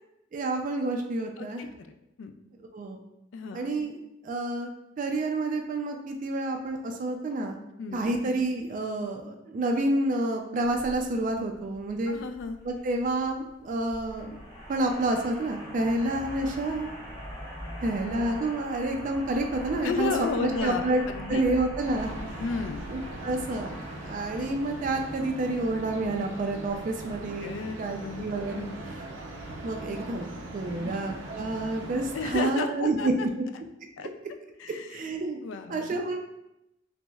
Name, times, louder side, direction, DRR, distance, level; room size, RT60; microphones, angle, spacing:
voice 1, 0.3-1.6 2.7-3.0 3.5-4.0 4.2-4.7 5.0-7.6 7.9-12.1 12.6-14.4 14.7-16.9 17.8-20.1 20.4-21.0 21.3-22.4 22.9-23.7 24.0-27.5 27.8-28.7 29.6-33.1 34.0-34.1 34.9-35.4 35.7-36.2, right 2 dB, 45° right, 3 dB, 0.3 m, -29 dB
voice 2, 1.4-2.3 3.3-3.7 7.8-8.2 12.1-12.6 19.8-21.4 22.4-22.8 27.4-28.2 28.5-28.8 30.8-31.0 32.1-33.3 34.0-34.1 34.6-35.1 35.4-35.9, left 5 dB, 80° left, 8 dB, 0.3 m, -33 dB
sound 1, 10.6-27.2, equal, 20° left, 1.0 m, -42 dB
sound 2, 21.8-32.4, right 2 dB, 85° right, 0.6 m, -41 dB
5.9 x 2.0 x 2.3 m, 0.88 s
head